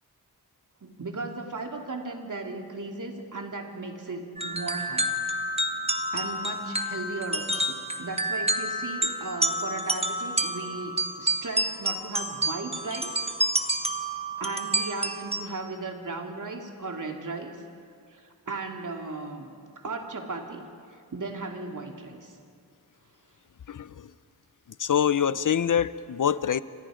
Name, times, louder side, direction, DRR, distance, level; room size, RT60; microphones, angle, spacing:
voice 1, 0.8-5.2 6.1-13.1 14.4-17.6 18.1-19.5 19.8-20.7 20.9-22.4, right 3 dB, 55° right, 2 dB, 2.8 m, -36 dB
sound 1, 4.4-15.4, right 1 dB, 15° right, 1.5 m, -29 dB
voice 2, 23.7-24.1 24.8-26.6, left 8 dB, 55° left, 16 dB, 0.7 m, -25 dB
29.0 x 25.5 x 5.1 m, 2.2 s
wide cardioid pair, 95°, 37 cm